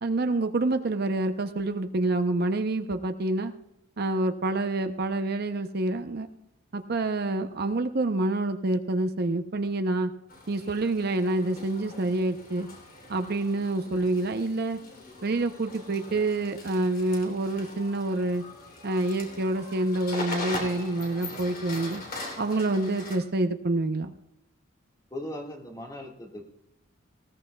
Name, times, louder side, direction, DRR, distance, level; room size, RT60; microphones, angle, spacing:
voice 1, 0.0-3.5 4.0-6.3 6.7-10.1 10.5-12.7 13.1-14.8 15.2-18.4 18.8-22.0 22.4-24.1, right 2 dB, 50° right, 7 dB, 0.6 m, -27 dB
sound 1, 10.3-23.2, left 2 dB, 45° left, 3.0 m, -41 dB
voice 2, 25.1-26.4, left 1 dB, 20° left, 1 dB, 1.7 m, -38 dB
19.5 x 16.5 x 2.3 m, 0.83 s
head